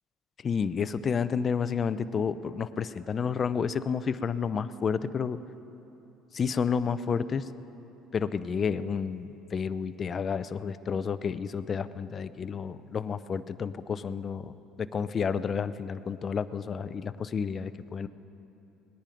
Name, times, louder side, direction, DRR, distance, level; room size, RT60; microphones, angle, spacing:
voice 1, 0.4-5.4 6.3-7.5 8.1-18.1, left 6 dB, 35° left, 14 dB, 0.5 m, -30 dB
19.0 x 10.5 x 5.1 m, 2.9 s
cardioid pair, 105°, 0 cm